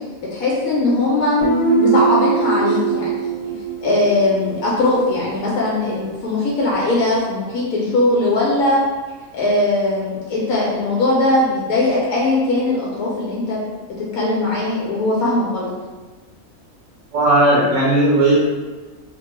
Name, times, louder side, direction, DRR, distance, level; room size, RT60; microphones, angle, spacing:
voice 1, 0.3-1.4 1.8-3.5 3.8-8.8 9.3-13.6 14.1-15.7, left 2 dB, 85° left, -5 dB, 1.1 m, -19 dB
Guitar, 1.4-5.0, right 5 dB, 40° left, 0.6 m, -21 dB
voice 2, 17.1-18.4, right 1 dB, 70° right, -5 dB, 0.9 m, -15 dB
3.0 x 2.2 x 3.0 m, 1.3 s
omnidirectional pair, 1.5 m